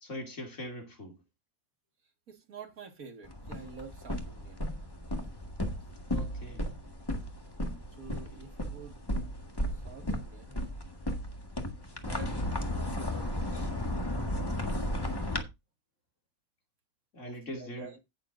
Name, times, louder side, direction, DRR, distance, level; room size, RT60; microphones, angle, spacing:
voice 1, 0.0-1.2 6.1-6.7 17.1-17.9, left 1 dB, 55° left, 2.9 m, -41 dB
voice 2, 2.3-4.7 8.0-9.0 9.5-10.6 12.0-15.0 17.2-18.0, right 5 dB, 75° right, 2.3 m, -49 dB
sound 1, 3.2-15.4, left 1 dB, 15° left, 1.7 m, -35 dB
16.5 x 7.1 x 2.6 m
omnidirectional pair, 1.5 m